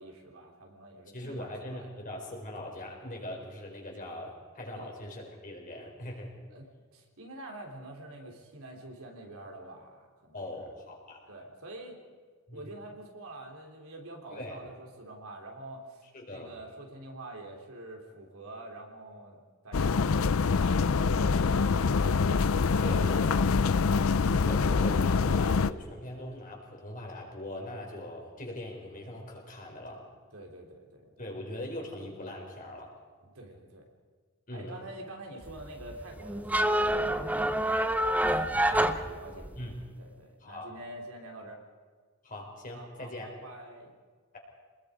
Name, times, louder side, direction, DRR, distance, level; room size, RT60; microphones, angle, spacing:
voice 1, 0.0-2.0 4.7-4.9 6.5-10.4 11.3-12.0 12.5-22.3 22.8-24.3 30.3-31.1 33.2-33.9 34.5-41.6 42.7-44.0, right 1 dB, 75° right, 1 dB, 3.9 m, -46 dB
voice 2, 1.1-6.3 10.3-11.2 12.5-12.7 14.3-14.6 16.1-16.5 22.8-23.3 23.6-23.9 24.4-30.1 31.2-32.9 34.5-34.7 38.5-39.0 39.6-39.7 40.4-40.7 42.2-43.3, left 1 dB, 40° left, 0 dB, 5.0 m, -41 dB
sound 1, 19.7-25.7, left 4 dB, 70° left, 0.6 m, -25 dB
sound 2, 35.4-39.8, right 1 dB, 5° right, 0.7 m, -27 dB
27.0 x 20.5 x 5.2 m, 1.5 s
head